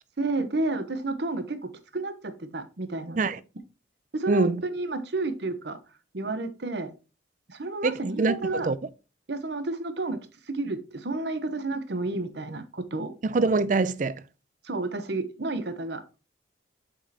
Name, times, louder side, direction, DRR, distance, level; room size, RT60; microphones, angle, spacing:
voice 1, 0.2-3.3 4.1-5.8 6.1-6.9 7.5-8.7 9.3-13.1 14.6-16.0, right 2 dB, 60° right, 0.8 m, -31 dB
voice 2, 7.8-8.4 8.6-8.8 13.2-14.2, right 3 dB, 40° right, 0.4 m, -24 dB
7.3 x 5.1 x 2.8 m
head